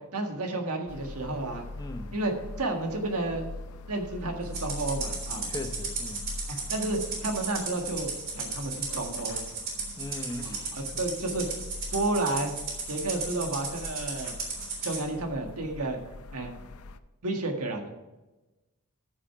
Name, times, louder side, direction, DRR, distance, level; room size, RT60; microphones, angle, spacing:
voice 1, 0.1-1.6 2.1-3.5 3.9-5.5 6.5-9.4 10.4-11.6 11.9-12.5 12.9-14.3 14.8-16.0 16.3-16.5 17.2-18.0, right 2 dB, 80° right, 3 dB, 1.7 m, -31 dB
sound 1, 0.9-17.0, left 2 dB, 70° left, 0.6 m, -43 dB
voice 2, 1.8-2.2 5.5-6.3 10.0-11.0, left 1 dB, 20° left, 7 dB, 0.8 m, -39 dB
Rattle (instrument), 4.5-15.0, right 4 dB, 40° right, 3.4 m, -35 dB
13.5 x 6.4 x 4.6 m, 1.1 s
head